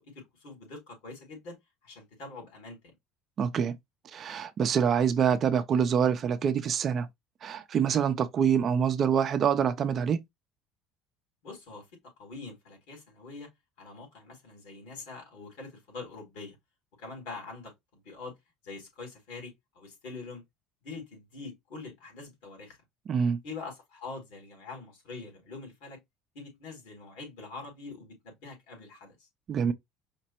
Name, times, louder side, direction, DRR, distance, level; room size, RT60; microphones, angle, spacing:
voice 1, 0.0-1.6 1.8-3.0 11.4-13.5 13.8-16.6 17.0-18.4 18.6-20.4 20.8-22.8 23.4-26.0 26.3-29.3, left 3 dB, 80° left, 3.5 m, -44 dB
voice 2, 3.4-3.8 4.1-7.1 7.4-10.2 23.1-23.4 29.5-29.7, right 7 dB, 45° right, 0.6 m, -26 dB
5.2 x 2.1 x 4.3 m
supercardioid pair, 105°, 0 cm